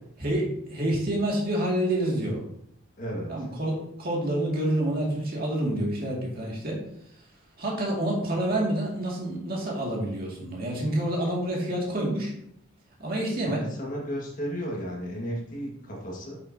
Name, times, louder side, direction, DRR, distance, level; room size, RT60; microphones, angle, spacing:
voice 1, 0.2-2.4 3.3-6.8 7.6-12.3 13.0-13.6, right 1 dB, 45° right, -3 dB, 2.2 m, -28 dB
voice 2, 3.0-3.3 13.4-16.4, equal, 40° left, -2 dB, 1.7 m, -34 dB
8.4 x 6.8 x 2.8 m, 0.74 s
head